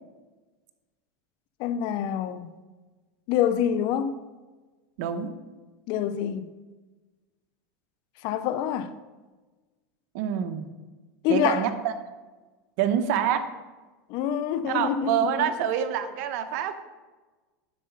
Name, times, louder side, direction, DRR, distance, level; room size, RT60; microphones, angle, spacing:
voice 1, 1.6-2.5 3.3-4.2 5.9-6.5 8.2-8.9 11.2-11.6 14.1-15.1, left 9 dB, 55° left, 0.7 m, -26 dB
voice 2, 5.0-5.3 10.1-10.7 11.3-11.9 12.8-13.4 14.6-16.7, right 9 dB, 65° right, 1.0 m, -26 dB
12.0 x 4.9 x 5.5 m
supercardioid pair, 125°, 10 cm